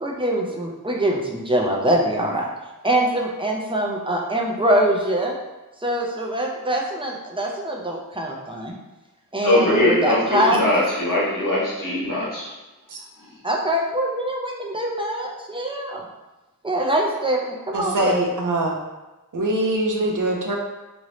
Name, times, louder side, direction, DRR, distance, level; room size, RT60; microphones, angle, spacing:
voice 1, 0.0-2.5 2.8-5.4 5.8-8.7 9.3-10.6 13.4-16.0 16.6-18.2, right 1 dB, 15° right, -1 dB, 0.5 m, -23 dB
voice 2, 9.4-12.5 13.2-13.3, left 1 dB, 65° left, -6 dB, 1.1 m, -21 dB
voice 3, 17.7-18.7 19.3-20.6, right 1 dB, 65° right, 0 dB, 0.6 m, -23 dB
3.0 x 2.6 x 3.0 m, 1.1 s
wide cardioid pair, 75°, 35 cm